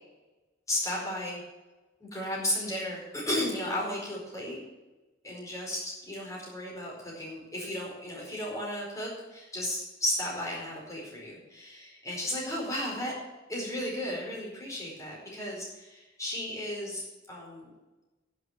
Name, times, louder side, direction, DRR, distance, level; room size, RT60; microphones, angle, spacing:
voice 1, 0.7-1.4 2.0-4.6 5.2-13.1 13.5-17.7, left 1 dB, 15° left, -3 dB, 4.6 m, -34 dB
11.0 x 6.5 x 8.9 m, 1.1 s
head